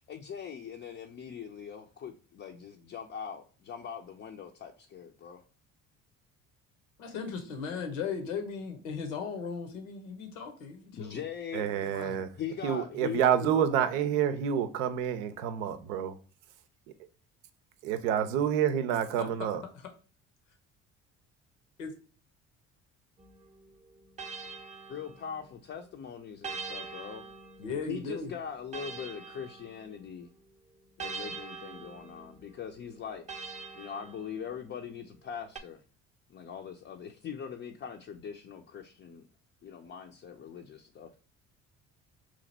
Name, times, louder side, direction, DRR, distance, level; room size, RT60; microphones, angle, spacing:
voice 1, 0.1-5.4 10.9-11.7 12.4-13.7 24.9-27.2 27.9-30.3 31.0-33.2 33.7-35.8 36.3-39.2 39.6-41.1, left 7 dB, 30° left, 0.5 m, -41 dB
voice 2, 7.0-11.2 11.7-12.2 19.2-19.3 21.8-21.9 27.6-28.3, left 5 dB, 80° left, 0.9 m, -37 dB
voice 3, 11.5-12.3 12.6-16.2 17.8-19.6, right 9 dB, 75° right, 0.6 m, -28 dB
sound 1, 23.2-25.7 26.4-30.2 31.0-34.8 35.6-35.7, right 4 dB, 20° right, 0.6 m, -44 dB
2.9 x 2.5 x 4.0 m
hypercardioid pair, 60°, 37 cm